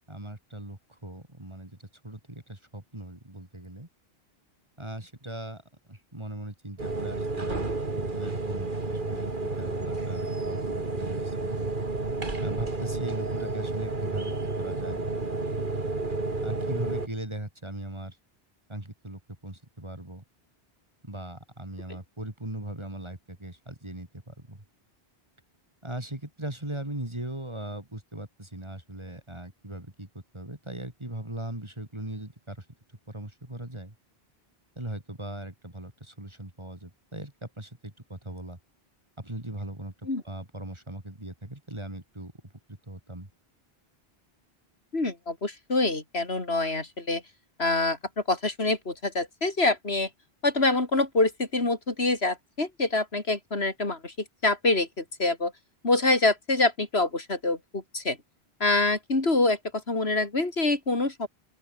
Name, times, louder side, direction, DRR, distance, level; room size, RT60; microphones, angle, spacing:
voice 1, 0.1-3.9 4.8-5.6 5.9-11.6 12.4-15.1 16.4-18.2 18.7-20.2 21.0-24.6 25.8-30.1 30.3-32.6 33.1-33.9 34.7-38.6 39.2-42.3 42.9-43.3, right 1 dB, 25° right, 3.4 m, -39 dB
sound 1, 6.8-17.1, right 3 dB, 50° right, 2.6 m, -31 dB
voice 2, 44.9-47.2 47.6-48.0 48.3-50.1 50.4-54.1 54.4-55.5 55.8-58.2 58.6-61.3, left 2 dB, 80° left, 3.8 m, -26 dB
open air
omnidirectional pair, 1.1 m